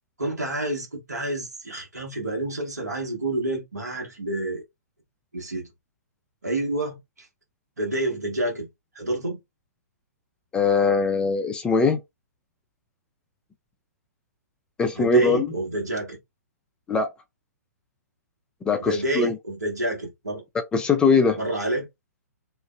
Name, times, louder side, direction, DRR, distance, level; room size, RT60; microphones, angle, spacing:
voice 1, 0.2-4.6 5.3-5.7 6.4-7.0 7.8-8.7 8.9-9.4 15.0-16.2 18.8-20.4 21.4-21.9, right 1 dB, 75° right, 1.2 m, -28 dB
voice 2, 10.5-12.0 14.8-15.5 16.9-17.1 18.6-19.4 20.7-21.4, left 4 dB, 10° left, 0.3 m, -21 dB
2.5 x 2.2 x 2.3 m
figure-of-eight pair, 115°, 9 cm